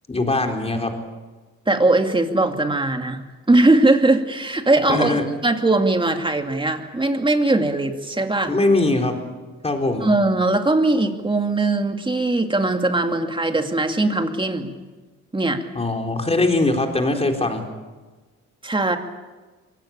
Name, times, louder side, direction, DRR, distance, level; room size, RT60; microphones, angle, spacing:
voice 1, 0.1-0.9 4.9-5.2 8.5-9.2 9.6-10.1 15.7-17.6, left 2 dB, 20° left, 3 dB, 4.1 m, -21 dB
voice 2, 1.7-3.2 3.5-8.5 10.0-14.7 15.3-15.6 18.6-19.0, right 2 dB, 15° right, 5 dB, 2.4 m, -20 dB
24.0 x 17.5 x 8.9 m, 1.3 s
cardioid pair, 90°, 30 cm